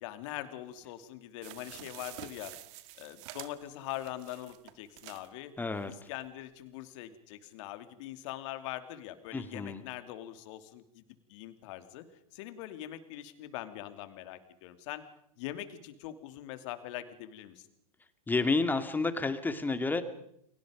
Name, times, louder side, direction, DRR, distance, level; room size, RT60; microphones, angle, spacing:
voice 1, 0.0-2.5 3.0-5.5 5.8-11.0 11.3-12.0 12.3-15.0 15.4-17.7, left 13 dB, 50° left, 9 dB, 3.0 m, -42 dB
sound 1, 1.4-5.3 5.8-5.9 6.1-6.2, right 16 dB, 50° right, 1.8 m, -48 dB
voice 2, 5.6-5.9 9.3-9.8 18.3-20.0, left 3 dB, 10° left, 10 dB, 2.3 m, -30 dB
30.0 x 23.5 x 5.3 m, 0.72 s
hypercardioid pair, 110°, 20 cm